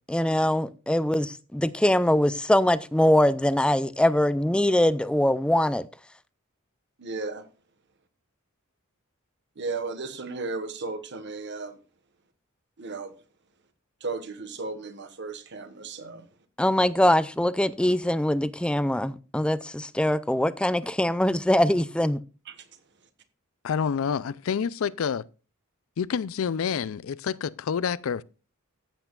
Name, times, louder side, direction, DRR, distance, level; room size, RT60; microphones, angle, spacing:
voice 1, 0.1-5.9 16.6-22.2, left 1 dB, 5° left, 0.4 m, -23 dB
voice 2, 7.0-7.4 9.6-11.8 12.8-13.1 14.0-16.2 22.5-22.7, right 3 dB, 55° right, 1.3 m, -35 dB
voice 3, 23.6-25.2 26.0-28.2, left 7 dB, 70° left, 0.4 m, -28 dB
14.5 x 8.0 x 2.4 m
head